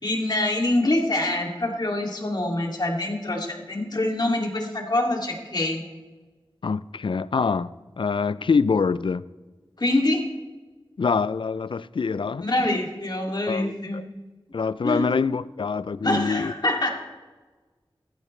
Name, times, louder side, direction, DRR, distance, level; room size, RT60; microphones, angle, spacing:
voice 1, 0.0-5.8 9.8-10.2 12.4-14.0 14.8-15.1 16.0-16.9, left 1 dB, 50° left, 2.5 m, -25 dB
voice 2, 6.6-9.2 11.0-12.4 13.5-14.0 14.5-16.5, left 5 dB, 65° left, 0.4 m, -25 dB
16.0 x 14.0 x 3.2 m
wide cardioid pair, 55°, 9 cm